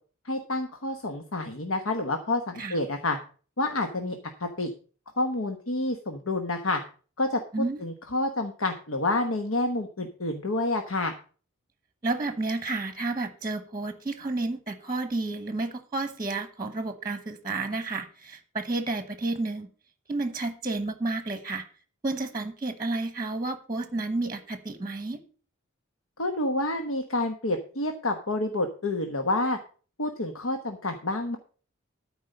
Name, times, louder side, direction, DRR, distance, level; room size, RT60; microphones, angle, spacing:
voice 1, 0.2-3.2 3.6-4.7 5.2-6.8 7.2-7.4 7.8-11.1 26.2-29.6 30.0-31.4, left 2 dB, 75° left, 5 dB, 1.2 m, -28 dB
voice 2, 12.0-19.7 20.1-21.6 22.0-25.2, right 2 dB, 20° right, 9 dB, 1.1 m, -31 dB
13.0 x 4.9 x 6.6 m, 0.40 s
head